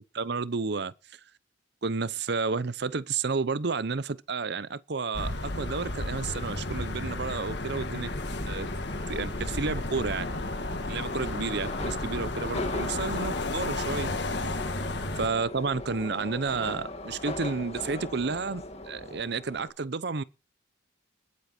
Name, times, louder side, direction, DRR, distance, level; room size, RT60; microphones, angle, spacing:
voice 1, 0.1-0.9 1.8-8.1 8.5-8.7 9.1-10.3 10.9-14.1 15.2-20.2, right 4 dB, 60° right, 0.7 m, -31 dB
sound 1, 5.1-15.3, left 2 dB, 60° left, 1.8 m, -33 dB
Subway metro underground, 5.4-19.7, left 1 dB, 35° left, 2.0 m, -40 dB
20.0 x 8.4 x 4.4 m
head